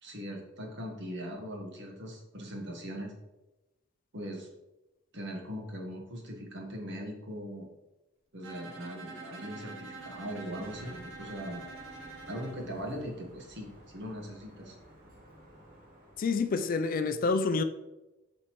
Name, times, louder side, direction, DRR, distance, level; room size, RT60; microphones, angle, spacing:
voice 1, 0.0-3.1 4.1-4.5 5.1-7.7 8.3-11.6 12.3-14.8, equal, 60° right, 1.3 m, -40 dB
Bowed string instrument, 8.4-12.6, right 3 dB, 85° right, 0.9 m, -46 dB
Sliding door, 9.7-16.9, right 1 dB, 45° right, 1.8 m, -54 dB
voice 2, 16.2-17.6, left 4 dB, 45° left, 0.4 m, -28 dB
7.5 x 5.2 x 3.1 m
head